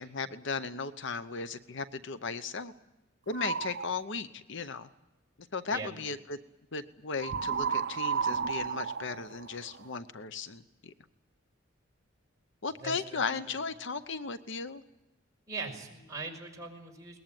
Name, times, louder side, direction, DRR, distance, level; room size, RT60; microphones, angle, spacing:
voice 1, 0.0-2.7 3.3-4.9 5.5-6.4 6.7-10.9 12.6-14.8, left 4 dB, 65° left, 12 dB, 0.9 m, -36 dB
sound 1, 3.3-3.9 7.2-10.0, right 6 dB, 55° right, 0.7 m, -32 dB
voice 2, 12.8-13.3 15.5-17.2, right 3 dB, 15° right, -1 dB, 5.5 m, -40 dB
22.0 x 20.0 x 9.0 m, 1.0 s
head